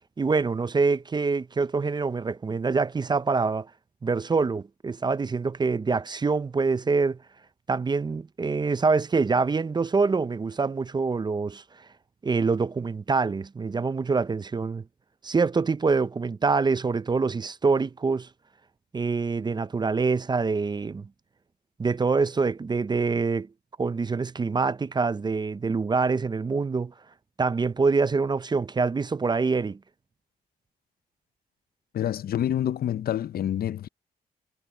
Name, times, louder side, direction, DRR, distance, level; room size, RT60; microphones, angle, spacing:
voice 1, 0.2-3.7 4.0-7.2 7.7-11.6 12.2-14.8 15.2-18.3 18.9-21.1 21.8-23.5 23.8-26.9 27.4-29.8, right 4 dB, 25° right, 0.5 m, -25 dB
voice 2, 31.9-33.9, left 11 dB, 70° left, 0.5 m, -27 dB
cardioid pair, 95°, 16 cm